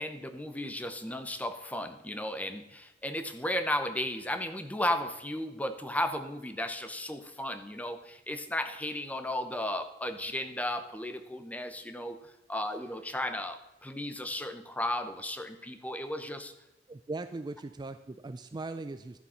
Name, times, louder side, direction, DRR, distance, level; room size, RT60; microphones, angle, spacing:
voice 1, 0.0-12.2 12.5-16.5, left 1 dB, 10° left, 9 dB, 0.8 m, -34 dB
voice 2, 16.9-19.2, right 3 dB, 25° right, 10 dB, 0.4 m, -39 dB
11.5 x 6.9 x 5.7 m, 0.96 s
head